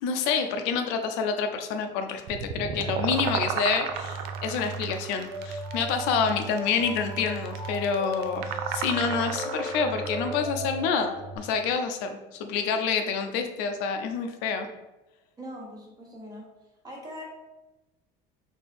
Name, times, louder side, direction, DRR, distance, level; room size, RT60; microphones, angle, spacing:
voice 1, 0.0-14.7, left 5 dB, 85° left, 6 dB, 0.6 m, -28 dB
sound 1, 2.3-10.4, right 7 dB, 65° right, 0.5 m, -34 dB
sound 2, 2.6-11.4, right 2 dB, 15° left, 0.9 m, -36 dB
voice 2, 15.4-16.5 16.8-17.2, equal, 20° right, -1 dB, 1.0 m, -41 dB
4.2 x 2.8 x 3.4 m, 1.0 s
cardioid pair, 155°, 17 cm